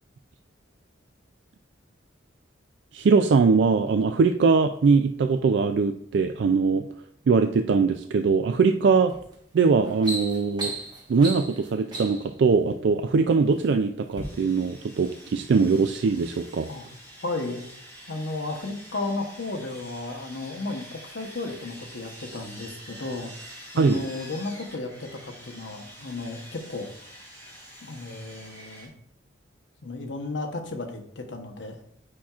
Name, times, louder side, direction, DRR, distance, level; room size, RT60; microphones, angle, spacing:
voice 1, 2.9-6.8 7.3-9.1 9.5-10.7 11.1-16.7 23.8-24.0, right 4 dB, 65° right, 7 dB, 0.3 m, -21 dB
sound 1, 9.1-9.3 9.7-12.3 13.1-13.7 14.1-14.2, right 2 dB, 20° right, 1.4 m, -35 dB
Sawing, 14.2-28.9, equal, 15° left, 2.6 m, -46 dB
voice 2, 17.2-17.6 18.1-26.9 27.8-28.9 29.8-31.8, left 2 dB, 75° left, 3 dB, 1.0 m, -34 dB
8.5 x 5.7 x 2.4 m, 0.68 s
head